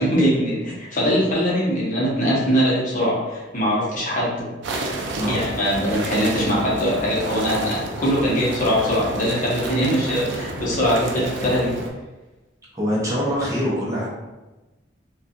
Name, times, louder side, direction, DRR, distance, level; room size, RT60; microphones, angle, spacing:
voice 1, 0.0-4.5 5.3-11.7, equal, 45° left, -6 dB, 0.8 m, -22 dB
sound 1, 4.6-11.9, right 2 dB, 65° right, 0.4 m, -30 dB
voice 2, 12.7-14.1, equal, 20° right, -7 dB, 0.6 m, -24 dB
2.4 x 2.3 x 2.6 m, 1.1 s
head